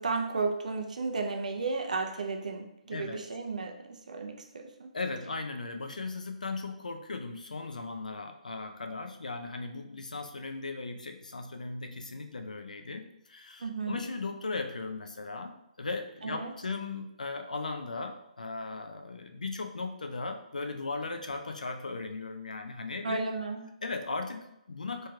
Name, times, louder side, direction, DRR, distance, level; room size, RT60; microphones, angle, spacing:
voice 1, 0.0-4.9 13.6-14.0 16.2-16.5 23.0-23.6, right 4 dB, 70° right, 4 dB, 0.5 m, -33 dB
voice 2, 4.9-23.2 23.8-25.1, left 3 dB, 80° left, 6 dB, 0.5 m, -37 dB
4.1 x 3.2 x 2.3 m, 0.81 s
figure-of-eight pair, 140°, 4 cm